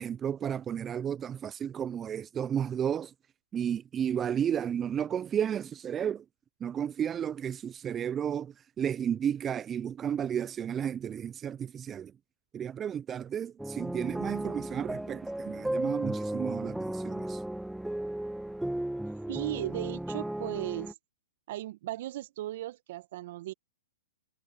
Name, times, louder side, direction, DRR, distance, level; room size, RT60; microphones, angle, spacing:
voice 1, 0.0-3.1 3.5-6.2 6.6-12.1 12.5-17.4, right 8 dB, 20° right, 0.5 m, -32 dB
sound 1, 13.6-20.9, right 1 dB, 5° right, 1.7 m, -35 dB
voice 2, 19.3-20.9 21.5-23.5, right 15 dB, 55° right, 1.5 m, -36 dB
hypercardioid pair, 115°, 0 cm